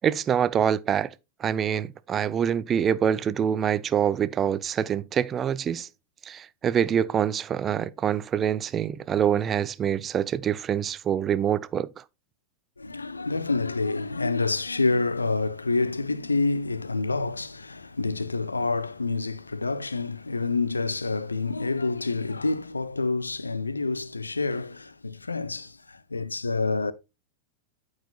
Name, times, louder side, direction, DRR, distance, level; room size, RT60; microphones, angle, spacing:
voice 1, 0.0-1.1 1.4-5.9 6.3-11.9, right 8 dB, 25° right, 0.4 m, -25 dB
voice 2, 12.8-26.9, left 3 dB, 80° left, 0.5 m, -28 dB
12.5 x 4.8 x 2.3 m
figure-of-eight pair, 90°, 0 cm